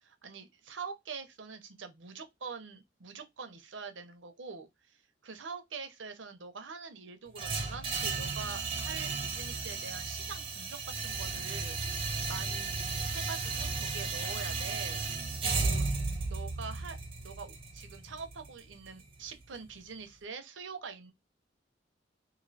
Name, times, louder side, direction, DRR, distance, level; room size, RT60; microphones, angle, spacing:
voice 1, 0.2-11.8 12.3-15.0 15.6-15.9 16.2-21.1, right 5 dB, 70° right, 0.7 m, -44 dB
sound 1, 7.3-19.4, right 4 dB, 30° right, 0.7 m, -34 dB
3.0 x 2.6 x 2.6 m
head